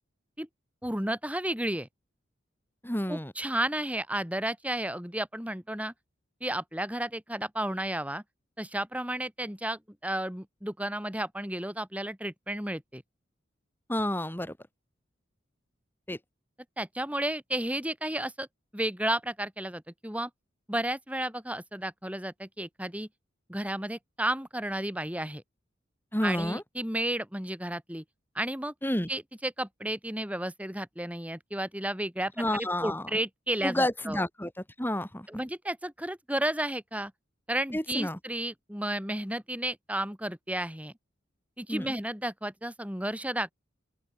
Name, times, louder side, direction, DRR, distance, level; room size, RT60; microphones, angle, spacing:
voice 1, 0.8-1.9 3.1-5.9 6.4-8.2 8.6-13.0 16.8-18.5 18.7-20.3 20.7-23.1 23.5-25.4 26.2-28.0 28.4-28.7 29.1-32.3 32.6-34.2 35.3-37.1 37.5-40.9 41.6-43.5, right 1 dB, 5° right, 5.0 m, -32 dB
voice 2, 2.8-3.3 13.9-14.5 16.1-16.2 26.1-26.6 28.8-29.1 32.4-33.2 33.6-35.3 37.7-38.2 41.7-41.9, left 1 dB, 10° left, 5.1 m, -30 dB
open air
head